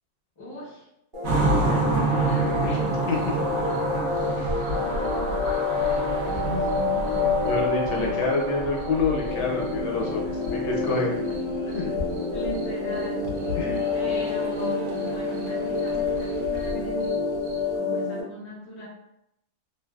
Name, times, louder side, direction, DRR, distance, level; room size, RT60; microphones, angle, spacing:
voice 1, 0.4-0.9 1.3-3.1 4.7-5.4 6.2-7.5 7.9-8.2 12.3-13.6 13.9-17.3 17.7-18.9, right 1 dB, 40° left, -5 dB, 0.4 m, -38 dB
sound 1, 1.1-18.2, left 3 dB, 25° right, 0.6 m, -28 dB
sound 2, 1.2-11.4 11.7-12.6 12.9-13.1 13.4-14.3 14.5-14.7 14.9-17.7, right 2 dB, 60° right, 0.9 m, -29 dB
voice 2, 7.4-11.1 11.7-11.9 13.6-13.9, left 3 dB, 70° left, -2 dB, 1.1 m, -27 dB
Cheering / Applause, 9.0-16.7, left 1 dB, 90° right, 1.4 m, -44 dB
3.2 x 2.5 x 2.3 m, 0.80 s
omnidirectional pair, 2.1 m